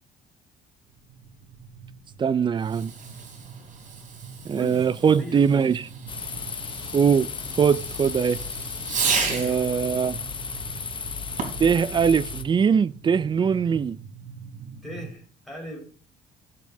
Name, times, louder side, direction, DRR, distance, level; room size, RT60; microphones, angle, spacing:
sound 1, 0.9-15.1, right 6 dB, 70° right, 1.4 m, -43 dB
voice 1, 2.2-2.9 4.5-5.9 6.9-7.3 7.6-8.4 9.3-10.2 11.6-14.0, right 7 dB, 30° right, 0.4 m, -21 dB
Fireworks, 2.6-9.7 11.3-11.8, right 5 dB, 50° right, 3.4 m, -33 dB
voice 2, 4.5-5.6 9.2-9.6 14.8-15.8, equal, ahead, 5.2 m, -39 dB
sound 2, 6.1-12.4, left 5 dB, 30° left, 0.9 m, -34 dB
13.5 x 7.2 x 2.8 m
cardioid pair, 110°, 17 cm